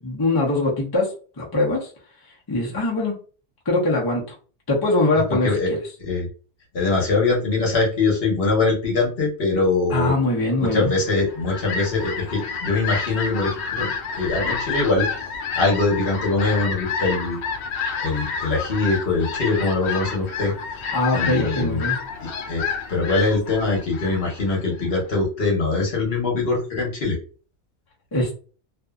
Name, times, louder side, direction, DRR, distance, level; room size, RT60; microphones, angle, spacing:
voice 1, 0.0-1.9 2.5-3.1 3.7-4.2 4.7-5.8 9.9-10.9 20.9-22.0 28.1-28.3, left 2 dB, 25° left, -3 dB, 0.7 m, -22 dB
voice 2, 5.1-5.7 6.0-6.3 6.7-10.1 10.6-15.1 15.6-17.4 18.0-20.5 21.1-21.8 22.2-27.2, left 3 dB, 65° left, -2 dB, 1.2 m, -23 dB
Fowl, 11.1-25.0, left 5 dB, 90° left, 0.9 m, -30 dB
2.6 x 2.5 x 2.3 m, 0.38 s
omnidirectional pair, 1.1 m